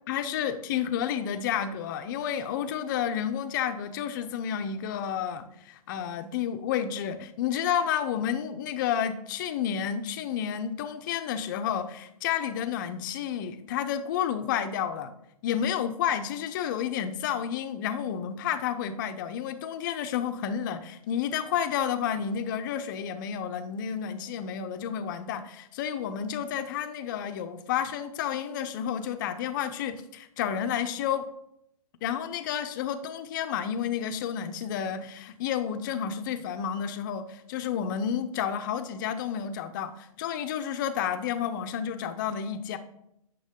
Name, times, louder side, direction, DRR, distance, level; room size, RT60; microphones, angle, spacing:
voice 1, 0.1-15.1 15.4-31.3 32.0-42.8, left 8 dB, 30° left, 9 dB, 0.6 m, -30 dB
8.9 x 6.3 x 3.6 m, 0.78 s
hypercardioid pair, 155°, 20 cm